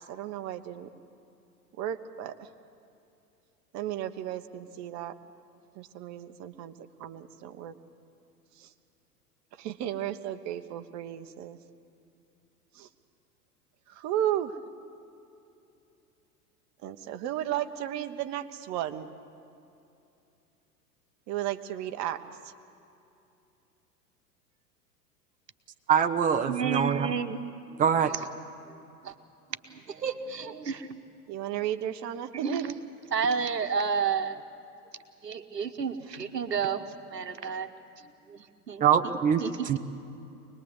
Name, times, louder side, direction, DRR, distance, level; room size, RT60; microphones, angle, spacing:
voice 1, 0.1-0.9 1.8-2.5 3.7-5.1 5.8-6.7 7.0-7.7 8.6-8.7 9.6-11.6 12.8-12.9 14.0-14.5 16.8-19.1 21.3-22.2 31.3-32.8, right 11 dB, 35° right, 7 dB, 1.1 m, -34 dB
voice 2, 25.9-27.1 27.8-28.1 38.8-39.8, right 8 dB, 15° right, 7 dB, 0.8 m, -24 dB
voice 3, 26.5-27.4 27.7-27.8 28.7-28.8 29.0-29.1 29.7-31.0 32.3-32.6 33.1-34.4 35.2-36.8 37.1-37.7 38.3-38.8 39.4-39.8, right 6 dB, 85° right, 9 dB, 1.2 m, -31 dB
24.5 x 20.5 x 8.1 m, 2.7 s
figure-of-eight pair, 90°, 48 cm